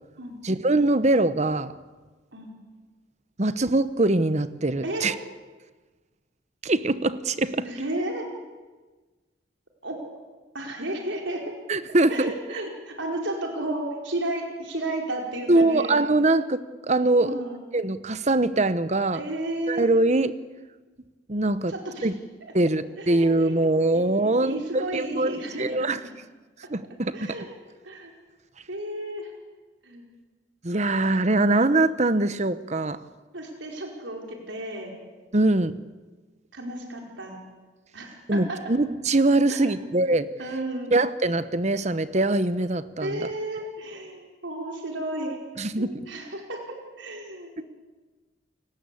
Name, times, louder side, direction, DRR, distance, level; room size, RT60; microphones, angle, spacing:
voice 1, 0.4-1.7 3.4-5.1 6.6-7.7 11.7-12.3 15.5-17.3 17.7-19.2 19.7-20.3 21.3-21.7 22.0-22.2 22.5-26.0 26.7-27.3 30.6-33.0 35.3-35.7 38.3-40.3 40.9-43.3 45.6-45.9, right 2 dB, 35° right, 14 dB, 1.0 m, -23 dB
voice 2, 4.8-5.1 7.6-8.3 9.8-10.0 10.5-11.4 12.1-16.0 17.1-17.6 19.1-19.9 21.7-22.1 23.0-23.6 23.9-26.1 27.1-27.5 27.8-28.1 28.7-29.3 29.8-30.0 33.3-35.0 36.5-37.4 37.9-38.7 39.5-39.9 40.4-40.9 43.0-45.4 45.8-46.6 47.0-47.6, right 1 dB, 85° right, 1 dB, 4.9 m, -33 dB
29.5 x 18.5 x 8.5 m, 1.3 s
head